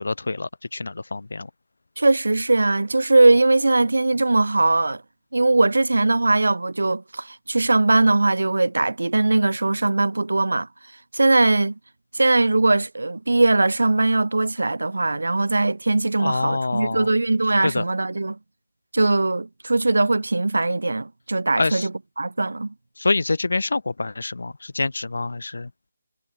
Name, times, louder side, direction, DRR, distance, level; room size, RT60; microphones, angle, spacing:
voice 1, 0.0-1.5 16.2-17.1 17.6-17.8 21.6-21.9 23.0-25.7, left 3 dB, 75° left, 1.3 m, -26 dB
voice 2, 2.0-5.0 5.3-10.7 11.1-11.7 12.1-18.4 18.9-21.9 22.2-22.7, right 2 dB, 80° right, 3.9 m, -20 dB
figure-of-eight pair, 160°, 0 cm